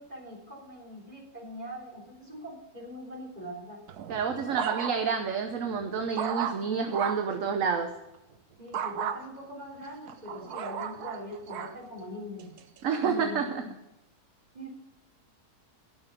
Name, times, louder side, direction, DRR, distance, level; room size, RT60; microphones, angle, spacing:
voice 1, 0.0-3.8 4.3-4.8 8.6-12.5 13.0-13.7 14.5-14.7, left 1 dB, 25° right, -2 dB, 3.1 m, -42 dB
sound 1, 3.9-5.2 5.7-7.4 8.7-9.2 9.8-11.8 12.4-12.8, right 8 dB, 80° right, 1.4 m, -35 dB
voice 2, 4.1-8.0 12.8-13.6, right 6 dB, 60° right, 6 dB, 1.2 m, -29 dB
13.0 x 6.3 x 6.9 m, 0.97 s
omnidirectional pair, 1.6 m